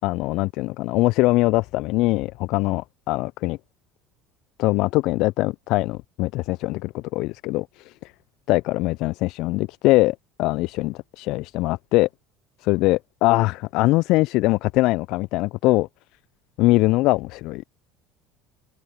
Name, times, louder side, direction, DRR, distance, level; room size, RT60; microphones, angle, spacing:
voice 1, 0.0-3.6 4.6-8.1 8.5-12.1 12.6-15.9 16.6-17.6, left 20 dB, 60° left, 0.5 m, -22 dB
open air
hypercardioid pair, 70°, 0 cm